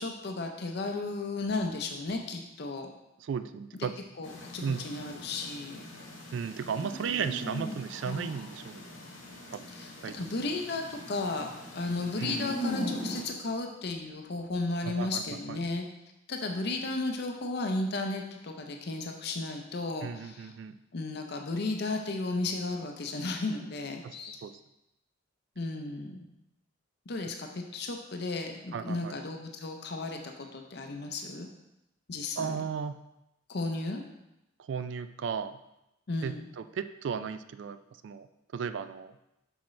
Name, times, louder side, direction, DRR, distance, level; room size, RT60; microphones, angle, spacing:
voice 1, 0.0-2.9 4.2-5.8 9.8-15.8 16.3-20.5 20.9-24.4 25.6-26.2 27.1-31.5 32.1-32.6 33.5-34.0 36.1-36.5, left 2 dB, 55° left, 3 dB, 0.6 m, -34 dB
voice 2, 3.2-3.9 4.6-4.8 6.3-8.8 9.5-9.7 10.0-10.2 12.2-12.6 14.8-15.2 15.5-15.6 20.0-20.8 24.0-24.2 24.4-24.5 28.7-29.2 32.4-33.0 34.6-35.6 36.2-38.3 38.5-39.2, right 6 dB, 65° right, 11 dB, 0.3 m, -35 dB
sound 1, 4.2-13.3, equal, 85° left, 1.5 m, -40 dB
6.3 x 5.8 x 3.2 m, 0.89 s
head